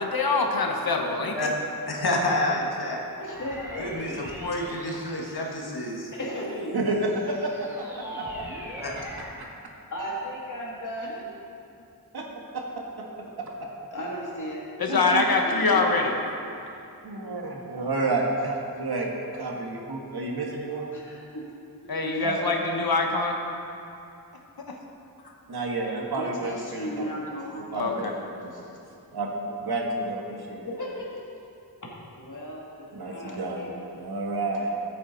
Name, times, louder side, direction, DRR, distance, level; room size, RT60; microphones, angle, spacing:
voice 1, 0.0-1.5 14.8-16.1 21.9-23.4 24.7-24.8 27.7-28.1 28.4-28.5, left 3 dB, 70° left, 2 dB, 1.2 m, -24 dB
voice 2, 1.9-3.0 3.8-6.1 8.8-8.9, left 1 dB, 85° left, -1 dB, 1.6 m, -28 dB
sound 1, 3.1-6.1 6.6-9.5, equal, 5° right, 1.9 m, -42 dB
voice 3, 3.2-4.0 6.1-6.8 7.8-8.4 9.9-11.3 13.9-16.2 20.9-21.4 21.8-21.9 26.2-27.7 28.5-28.6 30.6-31.2 31.8-33.9, equal, 55° left, -4 dB, 2.5 m, -36 dB
voice 4, 6.7-8.2 8.9-9.0 9.4-9.5 12.1-12.3 12.5-13.0 13.4-13.7 14.9-15.2 17.0-19.1 19.3-20.9 22.2-22.5 25.5-27.1 27.6-28.5 29.1-30.6 32.9-33.6 34.0-34.8, right 2 dB, 85° right, 0 dB, 1.6 m, -30 dB
14.0 x 8.5 x 4.0 m, 2.6 s
wide cardioid pair, 90°, 37 cm